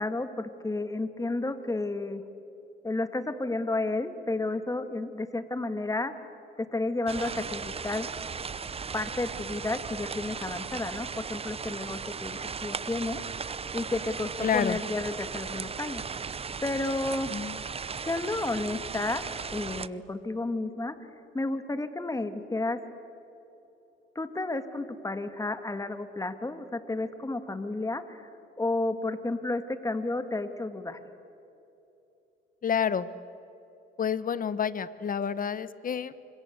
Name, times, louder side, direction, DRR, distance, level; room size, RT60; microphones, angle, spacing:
voice 1, 0.0-2.2 2.8-6.1 6.6-8.1 8.9-16.4 16.6-17.4 18.1-19.2 19.5-21.0 21.3-22.8 24.2-28.2 28.6-31.0, left 2 dB, 15° left, 9 dB, 2.0 m, -32 dB
sound 1, 7.1-19.9, right 5 dB, 30° right, 0.7 m, -37 dB
voice 2, 14.4-14.8 17.3-17.6 32.6-33.1 34.0-36.1, left 7 dB, 45° left, 15 dB, 1.1 m, -29 dB
28.5 x 25.5 x 8.1 m, 2.9 s
cardioid pair, 90°, 20 cm